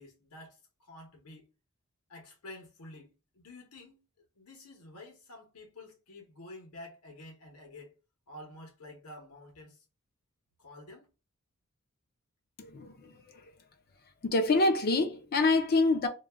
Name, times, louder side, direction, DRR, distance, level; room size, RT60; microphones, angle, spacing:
voice 1, 0.0-1.5 2.1-4.0 4.4-7.9 8.3-9.8 10.6-11.1, left 1 dB, 90° left, 0.8 m, -50 dB
voice 2, 12.6-13.5 14.2-16.1, left 3 dB, 45° left, 0.4 m, -27 dB
2.3 x 2.2 x 3.3 m
head